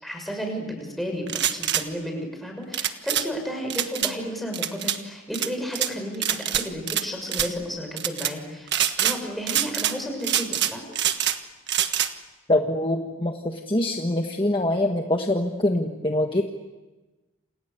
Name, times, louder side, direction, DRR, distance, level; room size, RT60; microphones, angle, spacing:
voice 1, 0.0-8.7 9.0-11.0, equal, ahead, 2 dB, 6.5 m, -32 dB
sound 1, 1.3-1.8 2.7-3.3 3.7-4.1 4.5-5.0 5.3-5.9 6.2-7.0 7.3-7.5 8.0-8.3 8.7-9.2 9.5-10.0 10.2-11.4 11.7-12.1, right 10 dB, 55° right, 1.5 m, -25 dB
voice 2, 12.5-16.4, left 1 dB, 25° left, 3 dB, 1.5 m, -24 dB
29.0 x 28.5 x 6.8 m, 1.2 s
head